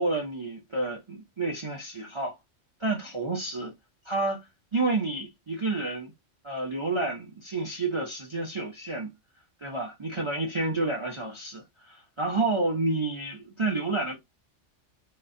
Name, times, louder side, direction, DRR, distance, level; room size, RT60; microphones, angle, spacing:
voice 1, 0.0-2.4 2.8-3.7 4.0-4.5 4.7-6.1 6.4-9.1 9.6-14.2, right 2 dB, 25° right, 0.8 m, -29 dB
4.1 x 2.4 x 2.6 m
omnidirectional pair, 1.3 m